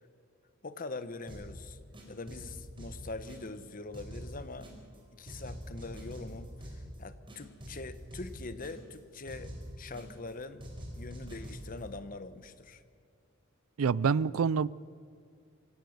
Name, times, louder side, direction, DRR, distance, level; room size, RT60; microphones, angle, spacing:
voice 1, 0.6-1.8 2.1-4.7 5.1-10.6 10.9-12.8, left 3 dB, 45° left, 1.0 m, -43 dB
sound 1, 1.3-1.6 1.9-3.6 3.9-5.0 5.3-7.0 7.3-9.0 9.3-10.3 10.6-11.8, equal, 25° right, 4.6 m, -45 dB
voice 2, 13.8-14.7, right 6 dB, 85° right, 0.4 m, -26 dB
25.0 x 17.5 x 6.6 m
head